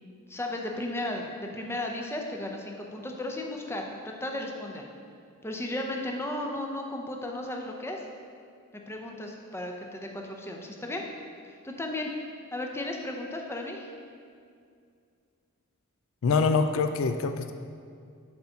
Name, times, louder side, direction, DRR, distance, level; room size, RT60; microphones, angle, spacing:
voice 1, 0.3-4.9 5.4-8.0 8.9-11.0 11.6-12.1 12.5-13.9, left 1 dB, 10° left, 1 dB, 0.7 m, -35 dB
voice 2, 16.2-17.5, left 4 dB, 65° left, 8 dB, 0.4 m, -24 dB
8.0 x 4.1 x 7.0 m, 2.3 s
head